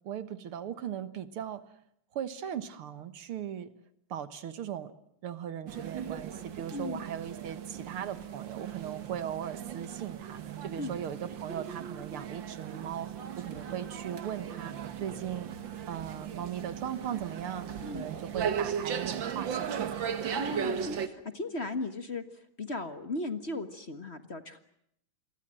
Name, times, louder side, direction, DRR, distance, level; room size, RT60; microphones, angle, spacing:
voice 1, 0.0-1.6 2.1-3.7 4.1-4.9 5.2-13.1 13.4-15.5 15.9-19.8, right 9 dB, 75° right, 13 dB, 2.3 m, -38 dB
sound 1, 5.7-21.1, right 8 dB, 60° right, 2.2 m, -37 dB
voice 2, 6.7-7.0 10.8-10.9 17.8-18.1 20.3-24.6, left 2 dB, 30° left, 9 dB, 1.6 m, -37 dB
28.5 x 23.5 x 7.7 m, 0.73 s
omnidirectional pair, 2.4 m